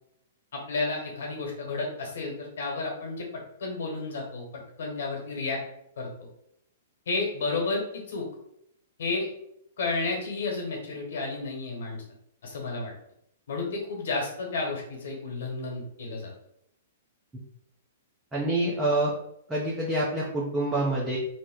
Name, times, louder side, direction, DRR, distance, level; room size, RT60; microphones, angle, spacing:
voice 1, 0.5-3.3 3.6-4.4 4.8-5.6 6.0-6.3 7.1-8.3 9.0-9.3 9.8-12.0 12.4-12.9 13.5-16.3, left 3 dB, 70° left, 0 dB, 1.2 m, -31 dB
voice 2, 18.3-19.1 19.5-21.2, right 1 dB, 10° right, -6 dB, 0.7 m, -26 dB
2.9 x 2.1 x 3.8 m, 0.74 s
hypercardioid pair, 130°, 0 cm